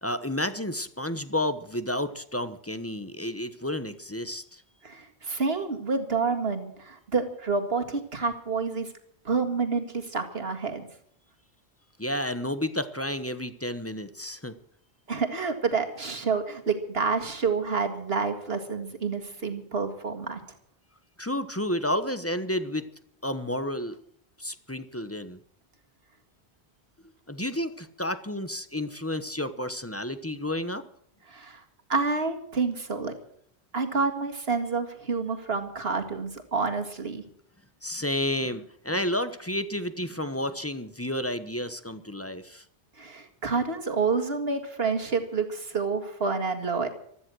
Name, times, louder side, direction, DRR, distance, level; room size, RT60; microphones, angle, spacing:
voice 1, 0.0-4.6 12.0-14.5 21.2-22.8 23.2-24.0 24.4-25.4 27.3-30.8 37.8-42.6, left 1 dB, 15° left, 12 dB, 1.0 m, -31 dB
voice 2, 4.8-8.9 9.2-10.9 15.1-20.4 31.3-31.6 31.9-33.1 33.7-37.2 43.0-46.9, right 4 dB, 65° right, 5 dB, 2.3 m, -28 dB
15.5 x 13.5 x 6.3 m, 0.67 s
omnidirectional pair, 1.1 m